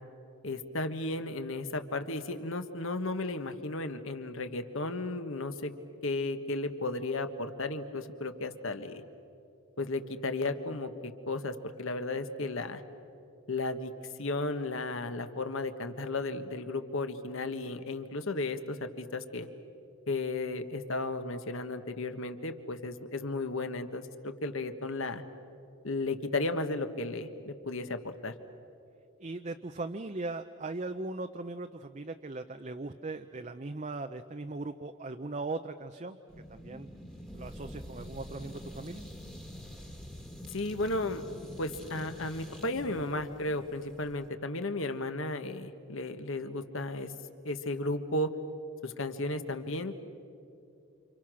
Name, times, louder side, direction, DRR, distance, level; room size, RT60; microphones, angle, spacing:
voice 1, 0.4-5.7 6.0-9.0 9.8-12.8 13.5-13.9 14.2-19.5 20.1-25.2 25.8-28.3 40.5-41.2 41.6-47.1 47.4-48.3 48.8-50.0, left 2 dB, 60° left, 8 dB, 1.5 m, -34 dB
voice 2, 29.2-36.2 36.5-36.9 37.3-39.0, right 2 dB, 30° right, 7 dB, 0.6 m, -39 dB
sound 1, 36.3-44.3, equal, ahead, 1.6 m, -46 dB
29.5 x 27.5 x 6.3 m, 2.7 s
head